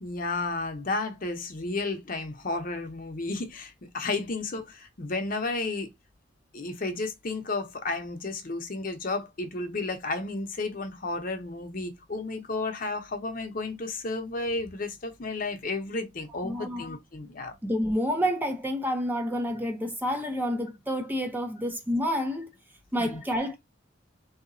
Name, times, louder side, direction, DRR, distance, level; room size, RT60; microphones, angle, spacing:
voice 1, 0.0-5.9 6.5-17.6 23.0-23.2, left 3 dB, 45° left, 0.7 m, -32 dB
voice 2, 16.4-16.8 17.6-22.5 22.9-23.6, equal, 10° right, 0.5 m, -29 dB
3.7 x 2.8 x 2.6 m
head